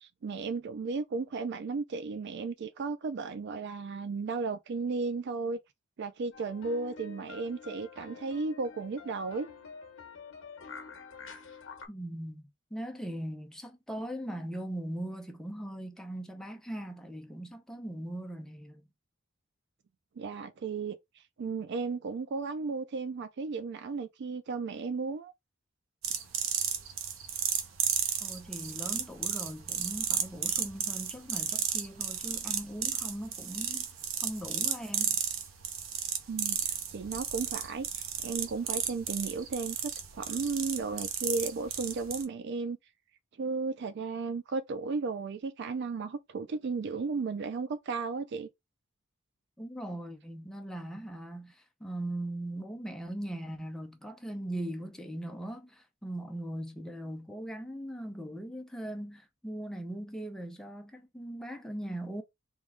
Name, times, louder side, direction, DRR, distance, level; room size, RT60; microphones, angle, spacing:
voice 1, 0.0-5.6 6.0-9.5 20.2-21.0 21.4-25.3 36.3-36.6 36.9-42.8 43.4-48.5, right 4 dB, 60° right, 0.4 m, -34 dB
sound 1, 6.3-11.9, left 5 dB, 65° left, 0.9 m, -47 dB
voice 2, 11.9-18.8 28.2-33.9 34.2-35.2 49.6-62.2, right 1 dB, 5° left, 0.7 m, -40 dB
sound 2, 26.0-42.2, right 7 dB, 75° right, 0.9 m, -33 dB
3.6 x 3.0 x 3.6 m
head